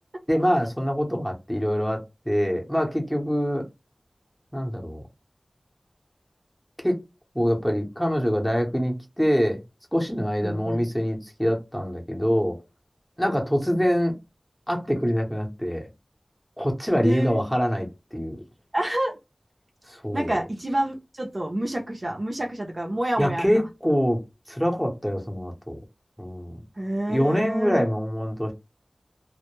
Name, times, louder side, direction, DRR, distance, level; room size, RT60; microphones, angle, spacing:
voice 1, 0.3-3.6 4.5-5.0 6.8-7.0 7.3-9.6 9.9-12.6 13.2-14.1 14.7-15.8 16.6-18.4 19.9-20.4 23.2-24.2 24.5-25.8 26.2-26.6 27.1-28.5, equal, ahead, 0.7 m, -25 dB
voice 2, 10.4-10.9 13.7-13.9 17.0-17.4 18.7-19.1 20.1-23.5 26.7-27.9, right 1 dB, 45° right, 0.6 m, -28 dB
2.1 x 2.0 x 2.9 m
wide cardioid pair, 65°, 0 cm